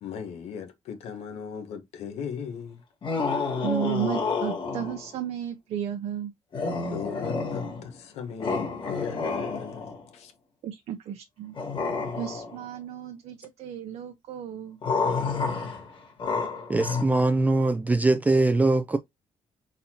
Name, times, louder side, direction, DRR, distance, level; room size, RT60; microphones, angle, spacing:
voice 1, 0.0-2.8 6.9-10.3, left 7 dB, 85° left, 1.2 m, -38 dB
sound 1, 3.0-5.1 6.5-8.0 8.4-10.1 11.5-12.6 14.8-17.0, left 4 dB, 50° left, 1.7 m, -29 dB
voice 2, 3.6-6.3 10.6-11.6 12.2-14.8, right 10 dB, 75° right, 0.7 m, -33 dB
voice 3, 16.7-19.0, right 2 dB, 15° right, 0.4 m, -22 dB
4.1 x 4.1 x 2.8 m
cardioid pair, 110°, 11 cm